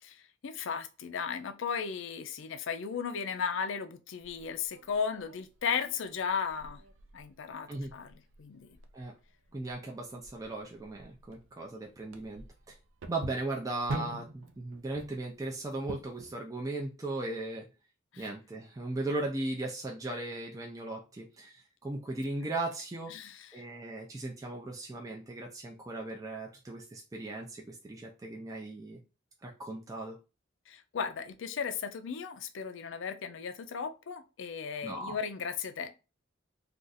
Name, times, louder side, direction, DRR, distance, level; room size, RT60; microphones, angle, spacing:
voice 1, 0.0-6.8 7.1-8.8 18.1-18.3 23.1-23.6 30.7-35.9, left 6 dB, 65° left, 0.4 m, -36 dB
sound 1, 4.2-16.3, right 3 dB, 70° right, 0.5 m, -46 dB
voice 2, 9.5-12.7 13.1-17.7 18.2-23.1 23.5-29.0 29.4-30.2 34.8-35.2, right 2 dB, 15° right, 0.4 m, -37 dB
2.5 x 2.4 x 3.9 m
head